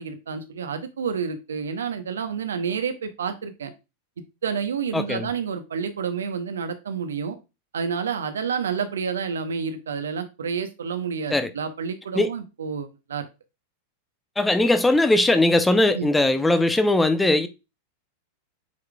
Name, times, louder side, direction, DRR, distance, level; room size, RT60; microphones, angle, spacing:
voice 1, 0.0-3.7 4.4-7.4 7.7-13.3 15.9-16.1, right 6 dB, 65° right, 1.0 m, -29 dB
voice 2, 4.9-5.3 11.3-11.5 12.1-12.3 14.4-17.5, left 2 dB, 10° left, 0.7 m, -20 dB
8.3 x 4.8 x 2.3 m
figure-of-eight pair, 90°, 0 cm